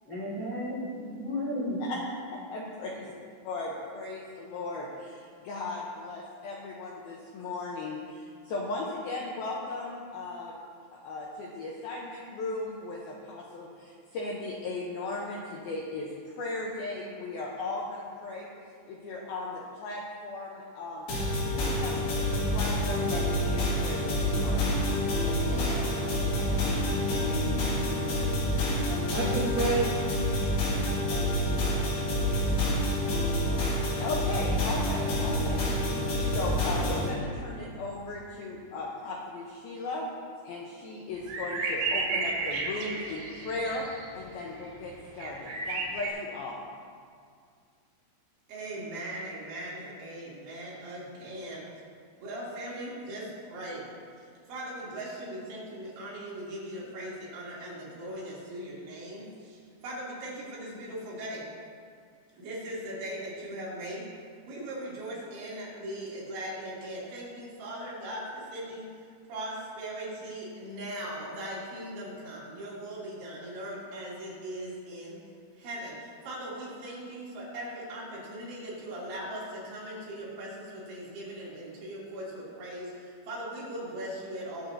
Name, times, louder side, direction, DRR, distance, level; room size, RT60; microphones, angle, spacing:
voice 1, 0.1-1.8 29.1-29.9, right 1 dB, 35° left, -8 dB, 1.3 m, -31 dB
voice 2, 2.5-3.1 3.4-10.6 10.9-18.5 18.9-21.1 21.5-24.7 34.0-35.6 36.3-40.1 40.4-43.9 44.1-46.6, left 2 dB, 90° left, -3 dB, 2.1 m, -37 dB
sound 1, 21.1-37.1, left 1 dB, 65° left, 4.6 m, -28 dB
voice 3, 25.1-26.8 48.5-51.6 52.2-53.9 54.5-61.5 62.4-64.1 64.5-68.9 69.3-75.2 75.6-84.7, right 1 dB, 70° right, -7 dB, 4.7 m, -39 dB
sound 2, 41.2-44.3 44.6-46.1, right 3 dB, 85° right, 4.4 m, -33 dB
20.0 x 8.2 x 2.8 m, 2.2 s
omnidirectional pair, 5.6 m